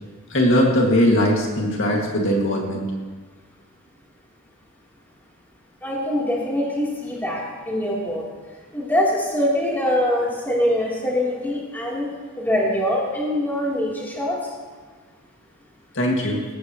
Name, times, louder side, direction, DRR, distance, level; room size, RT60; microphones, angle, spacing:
voice 1, 0.3-2.9 15.9-16.4, equal, 60° left, -2 dB, 2.3 m, -20 dB
voice 2, 5.8-8.2 8.7-12.1 12.4-14.4 16.2-16.3, left 1 dB, 10° left, -6 dB, 3.6 m, -23 dB
18.5 x 17.0 x 3.2 m, 1.4 s
head